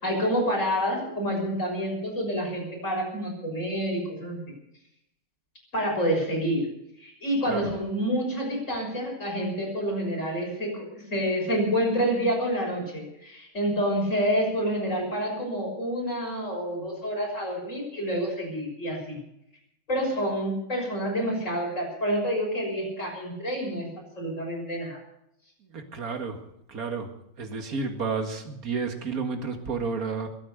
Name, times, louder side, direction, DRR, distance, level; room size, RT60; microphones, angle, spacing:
voice 1, 0.0-4.4 5.7-6.7 7.0-19.2 19.9-23.9 24.2-25.0, equal, 35° left, -1 dB, 6.7 m, -28 dB
voice 2, 25.7-26.4 26.7-27.1 27.4-30.3, right 4 dB, 45° right, 5 dB, 2.2 m, -31 dB
22.0 x 9.0 x 6.8 m, 0.79 s
omnidirectional pair, 2.4 m